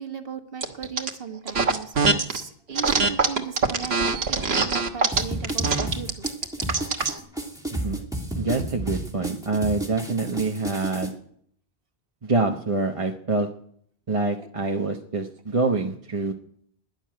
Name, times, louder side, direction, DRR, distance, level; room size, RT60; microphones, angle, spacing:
voice 1, 0.0-6.3 14.4-14.5, right 7 dB, 65° right, 6 dB, 1.6 m, -37 dB
sound 1, 0.6-1.1 1.5-2.4 2.7-7.2, right 4 dB, 80° right, 1.6 m, -23 dB
sound 2, 5.1-11.1, right 1 dB, 5° right, 2.7 m, -32 dB
voice 2, 7.7-8.0 8.3-11.2 12.2-13.5 14.1-16.3, right 3 dB, 35° right, 2 dB, 1.0 m, -26 dB
12.5 x 11.0 x 9.3 m, 0.65 s
omnidirectional pair, 1.0 m